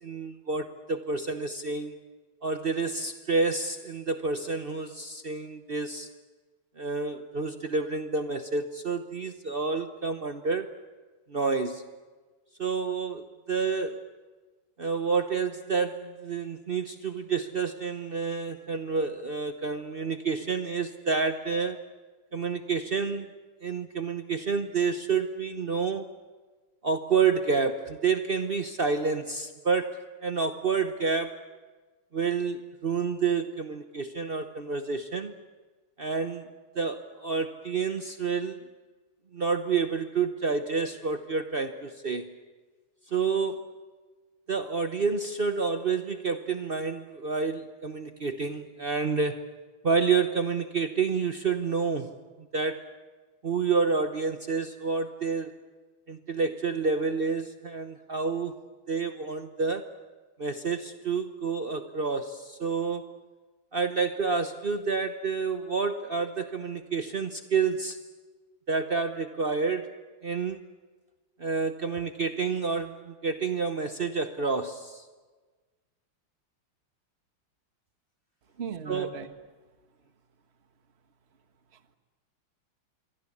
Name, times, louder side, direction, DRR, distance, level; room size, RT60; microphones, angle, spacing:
voice 1, 0.0-2.0 2.4-6.1 6.8-10.7 11.3-11.8 12.6-14.1 14.8-21.8 22.3-23.3 23.6-26.1 26.8-31.4 32.1-35.3 36.0-36.5 36.7-38.6 39.3-42.3 43.1-43.6 44.5-49.4 49.8-52.2 52.5-52.9 53.4-55.5 56.1-58.6 58.9-59.9 60.4-63.1 63.7-68.0 68.7-70.0 70.2-70.6 71.4-75.0 78.9-79.1, right 5 dB, 60° right, 8 dB, 0.5 m, -29 dB
voice 2, 78.6-79.3 81.7-82.0, right 7 dB, 35° right, 8 dB, 1.4 m, -38 dB
26.5 x 23.0 x 8.5 m, 1.3 s
omnidirectional pair, 2.4 m